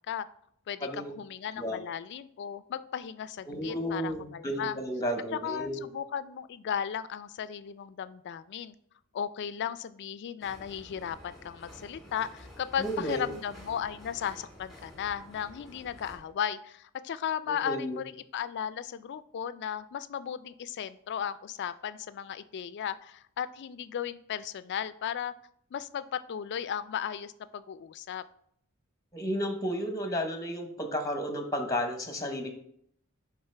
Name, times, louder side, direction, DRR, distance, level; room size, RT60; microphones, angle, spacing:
voice 1, 0.7-4.8 5.3-8.7 9.1-25.3 25.7-28.2, left 8 dB, 55° left, 14 dB, 0.3 m, -35 dB
voice 2, 3.5-5.9 12.8-13.3 17.7-18.0 29.1-32.5, equal, 15° left, 5 dB, 0.9 m, -32 dB
sound 1, 10.4-16.2, left 1 dB, ahead, 1.9 m, -50 dB
10.5 x 3.6 x 3.3 m, 0.68 s
head